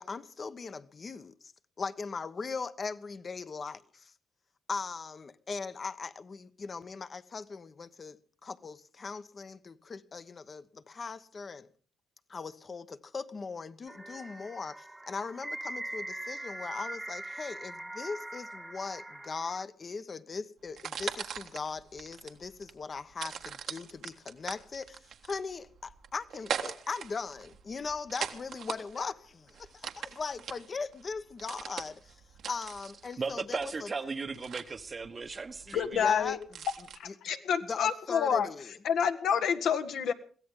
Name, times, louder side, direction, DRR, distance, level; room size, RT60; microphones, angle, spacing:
voice 1, 0.0-1.5 1.8-4.1 4.7-8.2 8.4-11.7 12.3-32.1 32.5-33.9 35.7-36.4 37.7-38.7, left 4 dB, 40° left, 1.0 m, -39 dB
sound 1, 13.9-19.6, right 1 dB, 10° right, 0.8 m, -41 dB
sound 2, 20.7-37.0, right 7 dB, 70° right, 1.5 m, -42 dB
voice 2, 33.2-36.1, right 4 dB, 35° right, 1.1 m, -36 dB
voice 3, 35.7-36.4 37.0-38.5 38.8-40.1, left 7 dB, 75° left, 1.5 m, -28 dB
22.5 x 16.0 x 3.8 m
cardioid pair, 90°, 0 cm